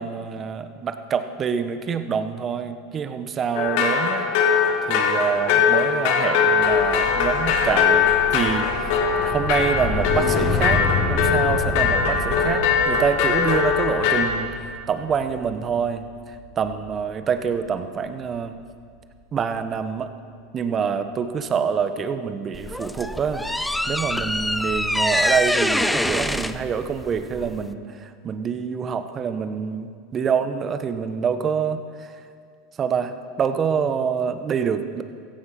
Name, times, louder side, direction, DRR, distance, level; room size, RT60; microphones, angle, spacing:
voice 1, 0.0-4.3 4.9-9.0 9.2-16.0 16.6-18.6 19.3-20.1 20.5-23.5 23.9-31.8 32.8-35.0, right 6 dB, 35° right, 10 dB, 1.2 m, -26 dB
sound 1, 3.5-14.2, left 6 dB, 60° left, 2.1 m, -21 dB
sound 2, 6.6-17.0 17.4-17.7, left 2 dB, 20° left, 4.0 m, -29 dB
sound 3, 22.5-27.7, left 1 dB, 5° left, 0.7 m, -25 dB
16.5 x 14.5 x 5.9 m, 2.1 s
hypercardioid pair, 90°, 0 cm